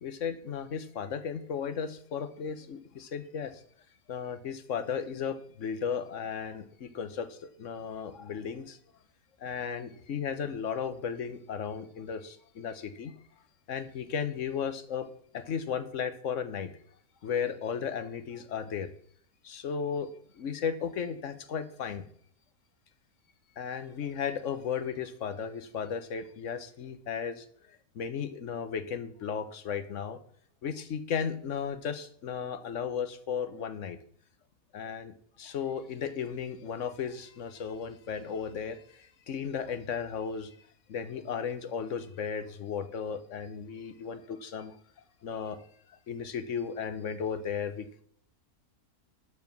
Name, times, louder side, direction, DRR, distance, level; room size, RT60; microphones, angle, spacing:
voice 1, 0.0-3.6 4.1-8.8 9.4-13.1 13.7-15.1 15.3-16.7 17.2-18.9 19.4-20.1 20.3-22.0 23.6-27.5 27.9-30.2 30.6-34.0 34.7-40.5 40.9-44.7 45.2-45.6 45.9-48.0, left 7 dB, 55° left, 11 dB, 1.2 m, -35 dB
12.5 x 4.9 x 6.0 m, 0.63 s
omnidirectional pair, 1.6 m